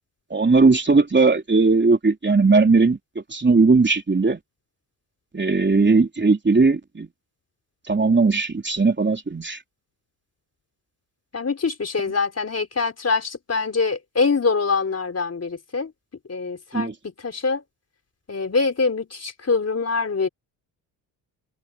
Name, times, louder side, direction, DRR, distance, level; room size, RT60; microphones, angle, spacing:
voice 1, 0.3-3.0 3.3-4.4 5.3-7.1 7.9-9.6 16.7-16.9, right 3 dB, 25° right, 3.7 m, -18 dB
voice 2, 11.3-15.9 16.3-17.6 18.3-20.3, left 4 dB, 35° left, 4.2 m, -24 dB
supercardioid pair, 60°, 45 cm